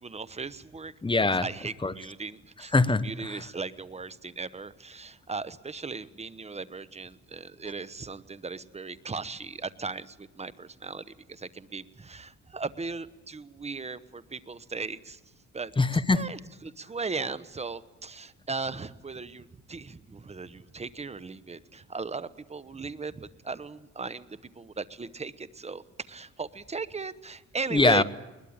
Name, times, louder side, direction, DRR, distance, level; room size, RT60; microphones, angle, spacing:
voice 1, 0.0-0.9 1.2-2.7 3.0-15.2 15.5-15.7 16.1-28.0, right 4 dB, 20° right, 16 dB, 1.0 m, -37 dB
voice 2, 1.0-1.5 1.8-1.9 2.7-3.4 15.8-16.2 27.7-28.0, left 3 dB, 15° left, 14 dB, 1.0 m, -23 dB
21.5 x 20.5 x 8.8 m, 1.1 s
cardioid pair, 90°, 30 cm